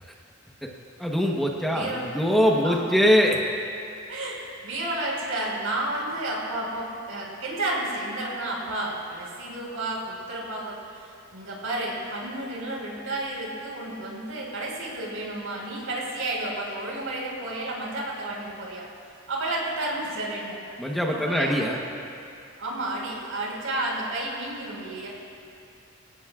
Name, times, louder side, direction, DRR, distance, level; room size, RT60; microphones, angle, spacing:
voice 1, 1.0-3.4 20.8-21.8, equal, ahead, -1 dB, 1.0 m, -22 dB
voice 2, 1.7-2.1 2.6-2.8 4.1-18.9 19.3-20.6 21.1-21.8 22.6-25.1, right 2 dB, 80° right, -3 dB, 4.6 m, -31 dB
25.5 x 17.5 x 2.4 m, 2.6 s
head